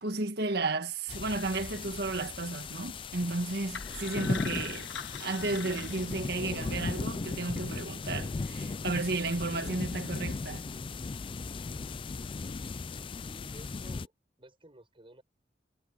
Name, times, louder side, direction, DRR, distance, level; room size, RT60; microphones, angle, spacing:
voice 1, 0.0-4.9 5.2-10.7, right 3 dB, 65° right, 1.7 m, -33 dB
sound 1, 1.1-14.1, left 3 dB, 30° left, 0.4 m, -37 dB
sound 2, 3.7-6.8, left 6 dB, 85° left, 1.2 m, -42 dB
voice 2, 13.2-14.1 14.4-15.2, right 1 dB, 30° right, 6.8 m, -54 dB
head